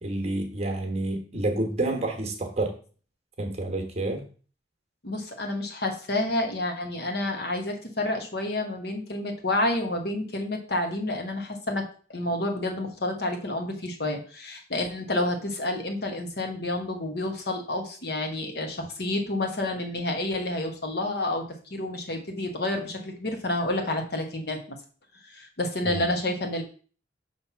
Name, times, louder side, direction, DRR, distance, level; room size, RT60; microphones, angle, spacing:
voice 1, 0.0-2.8 3.4-4.3 25.8-26.0, right 2 dB, 35° right, 3 dB, 1.2 m, -29 dB
voice 2, 5.0-21.4 21.7-24.8 25.2-26.6, left 1 dB, 60° left, 4 dB, 1.2 m, -29 dB
5.8 x 3.3 x 5.6 m, 0.40 s
head